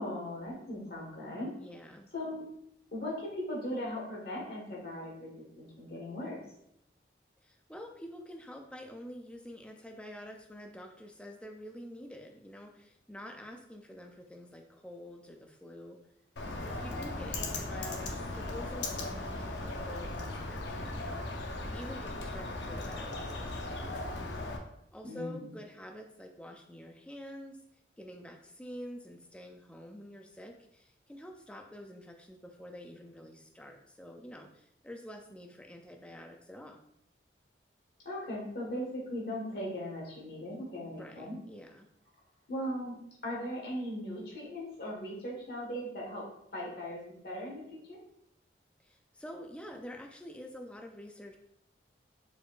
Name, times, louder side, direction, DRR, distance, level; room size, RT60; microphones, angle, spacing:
voice 1, 0.0-1.5 2.1-2.5 2.9-6.4 17.4-17.5 25.0-25.5 38.0-41.4 42.5-43.0 43.2-46.2 46.5-48.0, left 1 dB, 60° left, -3 dB, 1.5 m, -38 dB
voice 2, 1.5-2.1 7.4-16.0 16.6-24.0 24.9-27.6 28.0-36.8 40.8-41.9 48.8-51.4, equal, 5° left, 3 dB, 0.4 m, -47 dB
Bird, 16.4-24.6, left 2 dB, 85° left, 0.7 m, -37 dB
4.7 x 4.5 x 2.5 m, 0.76 s
head